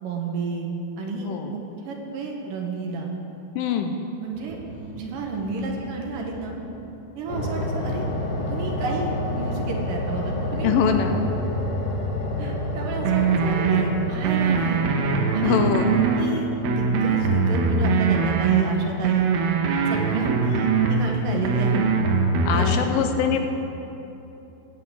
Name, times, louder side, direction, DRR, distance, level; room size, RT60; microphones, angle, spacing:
voice 1, 0.0-3.1 4.2-4.6 4.9-6.6 7.2-8.1 8.4-10.8 12.4-14.9 15.3-15.6 16.2-19.3 19.9-21.8 22.5-23.1, right 3 dB, 70° right, 1 dB, 2.7 m, -31 dB
voice 2, 3.6-4.0 10.6-11.3 15.4-16.0 22.4-23.4, left 7 dB, 80° left, 5 dB, 2.2 m, -23 dB
sound 1, 4.3-6.6 7.3-16.6, left 1 dB, 65° left, 3.4 m, -30 dB
sound 2, 13.1-13.8 14.2-16.3 16.6-18.6 19.0-21.1 21.4-22.7, right 5 dB, 85° right, 2.8 m, -22 dB
15.5 x 5.9 x 8.5 m, 3.0 s
omnidirectional pair, 4.2 m